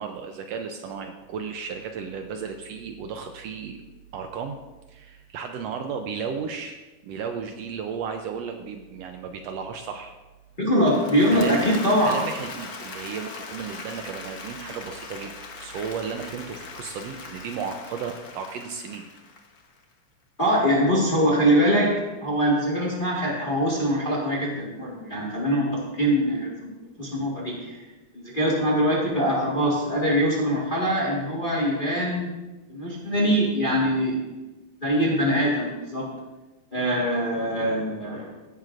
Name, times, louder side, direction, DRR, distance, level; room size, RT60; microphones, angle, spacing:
voice 1, 0.0-3.8 4.1-4.6 4.9-10.1 11.3-15.3 15.6-19.0, right 6 dB, 75° right, 5 dB, 1.7 m, -34 dB
voice 2, 10.6-12.1 20.4-27.8 28.1-32.3 32.7-34.2 34.8-36.1 36.7-38.3, equal, 20° left, -4 dB, 1.4 m, -23 dB
Applause / Crowd, 10.7-19.8, left 4 dB, 80° left, 0.8 m, -40 dB
15.0 x 11.0 x 2.6 m, 1.1 s
omnidirectional pair, 3.3 m